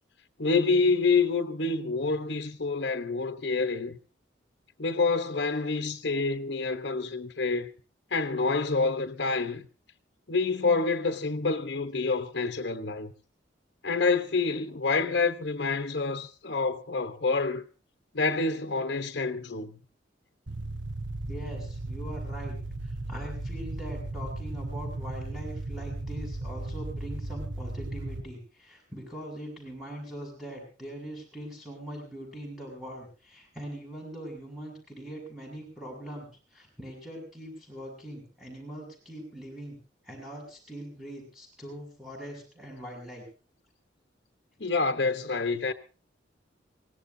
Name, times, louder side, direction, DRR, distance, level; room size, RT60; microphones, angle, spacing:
voice 1, 0.4-4.0 4.8-7.7 8.1-9.6 10.3-13.1 13.8-17.6 18.1-19.8 44.6-45.7, left 4 dB, 60° left, 1.0 m, -27 dB
sound 1, 20.5-28.2, right 2 dB, 90° right, 1.4 m, -36 dB
voice 2, 21.3-22.6 22.8-36.3 36.5-39.8 40.0-43.3, equal, ahead, 6.9 m, -42 dB
24.0 x 18.0 x 2.7 m
head